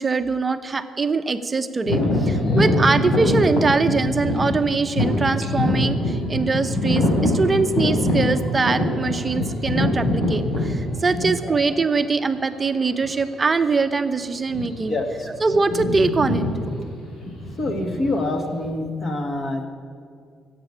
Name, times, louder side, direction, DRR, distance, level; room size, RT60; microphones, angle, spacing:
voice 1, 0.0-14.9 15.4-16.9, right 4 dB, 25° right, 9 dB, 0.7 m, -22 dB
sound 1, 1.8-11.6 12.3-12.4 13.0-13.3 13.5-13.8 14.4-15.0 15.2-18.7, left 1 dB, 65° left, 4.5 m, -23 dB
voice 2, 11.2-11.6 14.9-15.3 17.6-19.6, left 2 dB, 30° left, 5 dB, 1.8 m, -26 dB
15.5 x 8.2 x 8.6 m, 2.1 s
cardioid pair, 145°, 0 cm